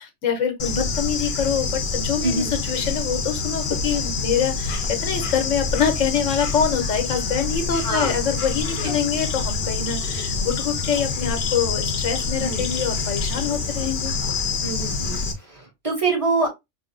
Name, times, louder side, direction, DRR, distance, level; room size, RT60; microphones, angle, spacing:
voice 1, 0.0-14.1, left 7 dB, 90° left, 1.3 m, -25 dB
Bird / Insect, 0.6-15.3, left 4 dB, 60° left, 0.9 m, -26 dB
voice 2, 2.2-2.5 7.8-8.1 8.8-9.0 10.2-10.3 12.4-12.6 14.6-16.5, right 3 dB, 30° right, 1.7 m, -26 dB
4.6 x 2.7 x 2.5 m
omnidirectional pair, 1.3 m